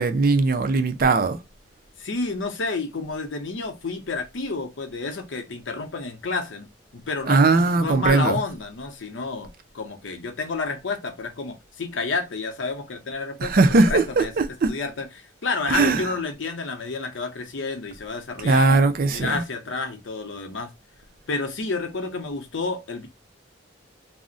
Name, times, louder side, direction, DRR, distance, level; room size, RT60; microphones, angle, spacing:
voice 1, 0.0-1.4 7.3-8.4 13.4-14.7 15.7-16.1 18.4-19.4, right 3 dB, 50° right, 0.4 m, -19 dB
voice 2, 2.0-6.7 6.9-14.3 14.7-18.8 19.1-20.7 21.3-23.1, left 3 dB, 80° left, 0.6 m, -30 dB
2.4 x 2.0 x 3.7 m
head